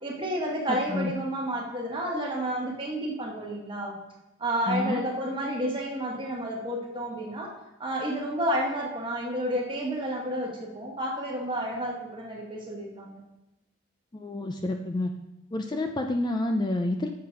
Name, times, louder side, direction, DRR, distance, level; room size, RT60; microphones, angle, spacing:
voice 1, 0.0-4.0 4.4-7.5 7.8-13.2, right 1 dB, 25° right, -1 dB, 1.4 m, -31 dB
voice 2, 0.7-1.1 4.7-5.0 14.1-15.1 15.5-17.1, left 2 dB, 20° left, 5 dB, 0.4 m, -29 dB
6.6 x 5.9 x 5.6 m, 0.95 s
head